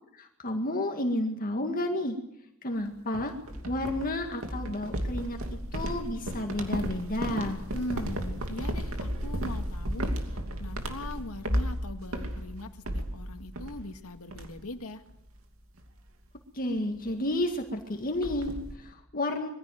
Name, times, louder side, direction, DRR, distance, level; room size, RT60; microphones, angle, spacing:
voice 1, 0.1-2.2 2.6-3.3 3.7-7.6 16.5-19.5, left 1 dB, 40° left, 4 dB, 2.0 m, -31 dB
sound 1, 3.1-14.0 14.3-14.8 15.1-15.4 15.8-16.0 17.1-17.2 17.4-17.5 17.8-18.7, equal, 70° right, 2.8 m, -34 dB
voice 2, 7.7-15.1, left 1 dB, 80° left, 7 dB, 2.0 m, -40 dB
22.0 x 15.5 x 9.3 m, 0.78 s
head